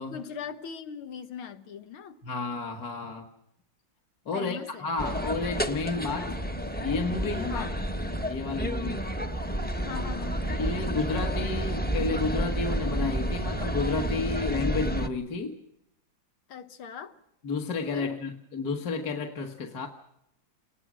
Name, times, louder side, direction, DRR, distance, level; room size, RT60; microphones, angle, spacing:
voice 1, 0.1-2.2 4.3-4.9 7.5-7.7 9.8-10.4 16.5-17.2 17.9-18.2, left 7 dB, 85° left, 2.3 m, -40 dB
voice 2, 2.2-3.3 4.3-6.4 6.8-7.7 8.3-9.0 10.5-15.6 17.4-19.9, left 4 dB, 50° left, 1.9 m, -31 dB
sound 1, 5.0-15.1, right 1 dB, 10° left, 0.7 m, -30 dB
29.5 x 19.5 x 6.2 m
omnidirectional pair, 2.3 m